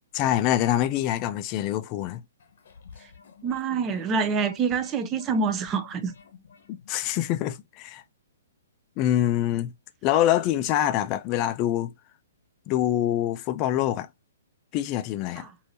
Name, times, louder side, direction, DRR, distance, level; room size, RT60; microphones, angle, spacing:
voice 1, 0.2-2.2 6.7-8.0 9.0-9.7 10.0-11.9 12.7-14.1 14.7-15.5, left 12 dB, 35° left, 0.4 m, -25 dB
sound 1, 2.4-7.3, left 6 dB, 65° left, 0.9 m, -50 dB
voice 2, 3.4-6.1 15.4-15.5, right 5 dB, 25° right, 0.5 m, -26 dB
3.3 x 2.7 x 2.6 m
hypercardioid pair, 130°, 0 cm